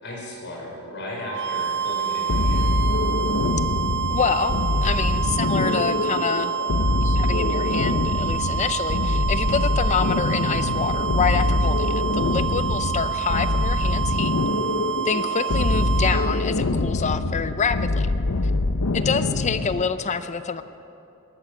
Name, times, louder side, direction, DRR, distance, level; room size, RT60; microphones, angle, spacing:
voice 1, 0.0-2.7 18.9-19.3, left 1 dB, 55° left, -2 dB, 5.0 m, -36 dB
sound 1, 1.2-16.5, right 9 dB, 55° right, 0.7 m, -28 dB
sound 2, 2.3-19.9, left 2 dB, 90° left, 0.8 m, -24 dB
voice 2, 4.1-6.5 7.0-14.3 15.0-18.1 18.9-20.6, left 5 dB, 30° left, 12 dB, 0.5 m, -27 dB
19.0 x 11.5 x 6.5 m, 2.9 s
head